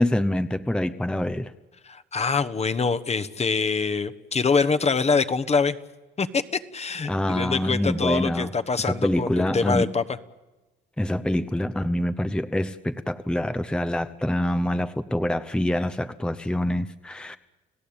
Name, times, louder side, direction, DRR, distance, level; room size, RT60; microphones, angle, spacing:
voice 1, 0.0-1.5 7.1-8.5 8.8-9.9 11.0-17.4, left 1 dB, 5° left, 10 dB, 0.8 m, -25 dB
voice 2, 1.9-5.8 6.2-10.0, left 5 dB, 35° left, 11 dB, 1.2 m, -24 dB
30.0 x 17.0 x 8.8 m, 1.2 s
cardioid pair, 90°, 20 cm